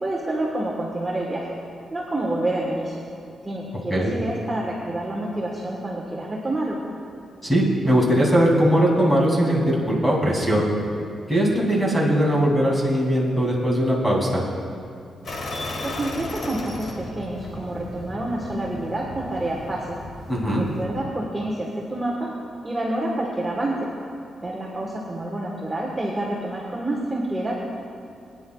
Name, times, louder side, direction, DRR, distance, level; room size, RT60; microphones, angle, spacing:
voice 1, 0.0-1.5 1.9-3.0 3.4-6.8 15.8-20.0 20.5-22.3 22.6-23.9 24.4-27.5, right 1 dB, 15° right, -4 dB, 1.3 m, -28 dB
voice 2, 7.4-10.7 11.3-14.4 20.3-20.7, equal, 5° left, -3 dB, 2.7 m, -20 dB
sound 1, 15.2-21.0, left 2 dB, 45° left, 1.5 m, -35 dB
21.5 x 10.0 x 2.4 m, 2.5 s
wide cardioid pair, 140°, 0 cm